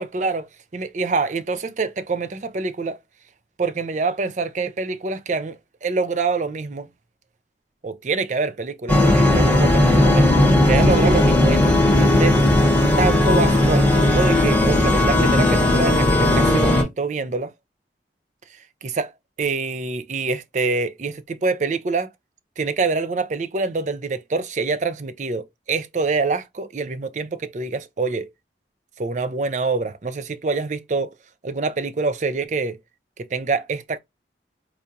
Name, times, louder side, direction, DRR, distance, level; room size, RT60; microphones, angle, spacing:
voice 1, 0.0-3.0 3.6-6.9 7.8-10.3 10.7-12.4 13.0-17.5 18.9-19.1 19.4-22.1 22.6-28.3 29.0-31.1 31.4-32.8 33.3-34.0, right 4 dB, 40° right, 0.4 m, -25 dB
sound 1, 8.9-16.8, left 1 dB, 10° left, 0.9 m, -16 dB
4.5 x 2.4 x 2.6 m
head